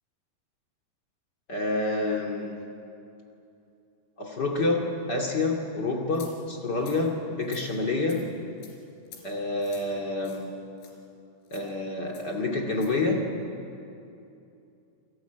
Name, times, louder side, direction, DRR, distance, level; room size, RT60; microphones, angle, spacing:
voice 1, 1.5-2.6 4.2-8.3 9.2-10.5 11.5-13.3, left 2 dB, 50° left, 0 dB, 1.3 m, -28 dB
sound 1, 6.1-6.3 6.8-7.0 7.4-7.7 8.1-8.2 8.6-8.7 9.1-9.2 9.6-9.9 10.2-10.4 10.8-10.9 11.5-11.7 12.1-12.3 12.7-12.9, left 8 dB, 80° left, 5.9 m, -48 dB
28.5 x 19.0 x 9.2 m, 2.7 s
omnidirectional pair, 5.9 m